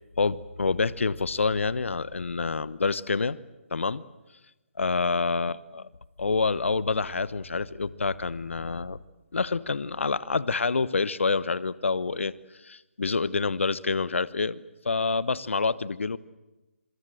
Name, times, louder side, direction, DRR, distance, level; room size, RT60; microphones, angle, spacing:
voice 1, 0.2-3.4 3.7-4.0 4.8-5.9 6.2-9.0 9.3-12.3 12.6-16.2, left 4 dB, 65° left, 18 dB, 1.2 m, -27 dB
26.0 x 24.5 x 7.8 m, 1.1 s
figure-of-eight pair, 145°, 7 cm